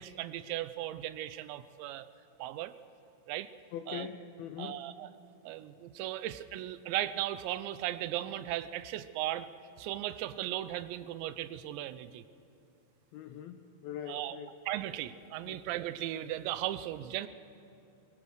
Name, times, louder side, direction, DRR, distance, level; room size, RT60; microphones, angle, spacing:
voice 1, 0.0-2.1 2.4-2.7 3.3-3.5 3.9-4.1 4.6-5.1 5.4-9.5 9.8-12.2 14.1-14.4 14.7-17.3, right 13 dB, 85° right, 13 dB, 2.9 m, -37 dB
voice 2, 3.7-4.8 13.1-14.5 15.5-15.6, left 9 dB, 90° left, 8 dB, 2.1 m, -42 dB
22.0 x 20.5 x 6.4 m, 2.7 s
omnidirectional pair, 5.1 m